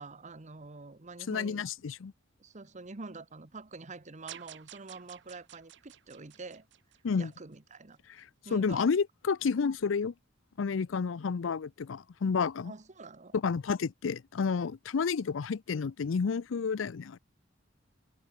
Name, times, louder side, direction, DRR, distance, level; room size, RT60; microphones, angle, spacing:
voice 1, 0.0-1.6 2.4-6.7 7.2-8.0 8.4-8.9 12.6-13.3, right 3 dB, 40° right, 1.2 m, -46 dB
voice 2, 1.3-2.1 7.0-7.3 8.5-10.1 10.6-12.7 13.3-17.2, left 5 dB, 80° left, 0.5 m, -30 dB
sound 1, 4.3-7.6, right 11 dB, 65° right, 1.0 m, -51 dB
head